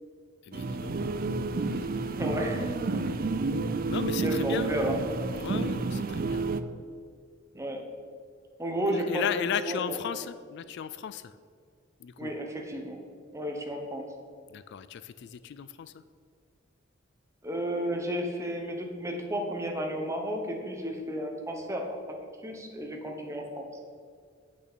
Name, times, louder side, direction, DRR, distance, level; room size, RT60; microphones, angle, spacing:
voice 1, 0.4-1.0 1.6-2.2 3.9-4.8 5.4-6.5 8.9-11.3 12.0-12.3 14.5-16.0, left 8 dB, 55° left, 13 dB, 0.3 m, -35 dB
sound 1, 0.5-6.6, right 3 dB, 45° right, 0.4 m, -30 dB
voice 2, 2.1-2.7 4.2-4.9 7.5-7.8 8.6-9.2 9.7-10.0 12.2-13.0 13.3-14.1 17.4-22.0 22.4-23.7, equal, 15° right, 2 dB, 1.1 m, -32 dB
8.6 x 6.0 x 6.2 m, 2.1 s
head